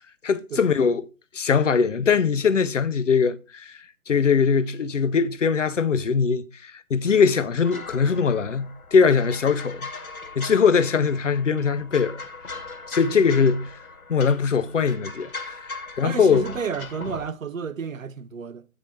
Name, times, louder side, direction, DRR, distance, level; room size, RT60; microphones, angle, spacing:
voice 1, 0.2-1.1 1.3-3.8 4.1-9.9 10.4-12.2 12.9-13.7 14.1-16.5, left 6 dB, 55° left, 0.7 m, -21 dB
sound 1, 7.6-17.3, left 3 dB, 75° left, 1.4 m, -39 dB
voice 2, 16.0-18.7, right 6 dB, 65° right, 0.7 m, -31 dB
8.8 x 4.7 x 4.6 m
figure-of-eight pair, 150°, 43 cm